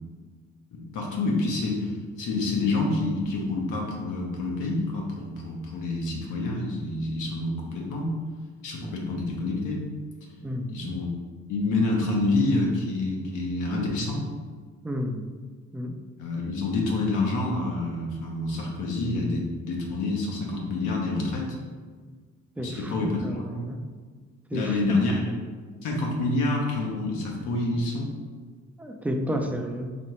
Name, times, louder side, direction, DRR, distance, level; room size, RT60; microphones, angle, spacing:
voice 1, 0.7-8.1 8.6-9.8 10.7-11.1 11.5-14.2 16.2-21.6 22.6-23.6 24.5-25.3 25.8-28.1, left 2 dB, 85° left, -1 dB, 0.9 m, -27 dB
voice 2, 10.4-10.8 14.8-15.3 15.7-16.0 22.6-23.8 24.5-25.0 28.8-30.0, equal, 5° right, 4 dB, 0.3 m, -31 dB
4.1 x 2.9 x 3.1 m, 1.5 s
cardioid pair, 90°, 30 cm